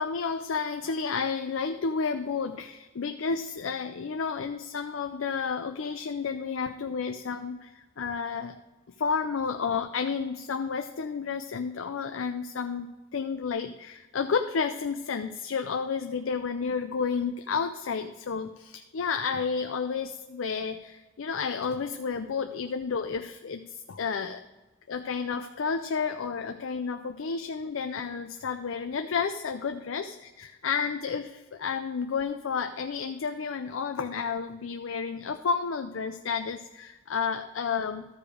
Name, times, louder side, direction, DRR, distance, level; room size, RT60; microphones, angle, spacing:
voice 1, 0.0-8.6 9.0-24.4 24.9-38.1, left 5 dB, 80° left, 7 dB, 0.5 m, -31 dB
13.5 x 4.9 x 5.0 m, 1.1 s
head